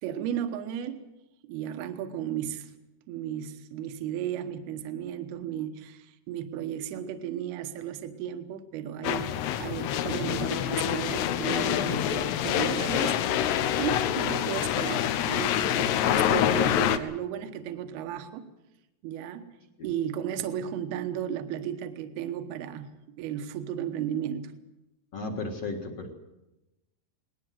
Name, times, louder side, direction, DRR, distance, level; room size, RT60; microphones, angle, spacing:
voice 1, 0.0-1.0 1.4-2.7 3.1-18.5 19.0-19.6 19.8-22.9 23.2-24.5, right 10 dB, 70° right, 8 dB, 3.0 m, -34 dB
sound 1, 9.0-17.0, left 10 dB, 80° left, 3.0 m, -26 dB
voice 2, 25.1-26.1, left 3 dB, 50° left, 1 dB, 2.2 m, -34 dB
20.5 x 19.5 x 7.6 m, 0.97 s
omnidirectional pair, 4.9 m